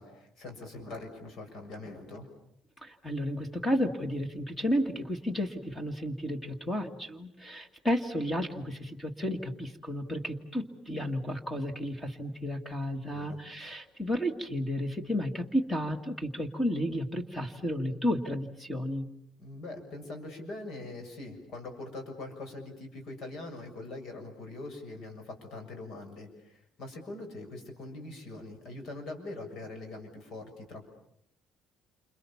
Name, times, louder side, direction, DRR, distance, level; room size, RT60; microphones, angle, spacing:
voice 1, 0.0-2.3 13.1-13.4 19.4-30.8, left 2 dB, 55° left, 5 dB, 6.8 m, -43 dB
voice 2, 2.8-19.1, equal, 10° left, 7 dB, 2.0 m, -32 dB
29.0 x 27.0 x 7.2 m, 0.75 s
cardioid pair, 165°, 0 cm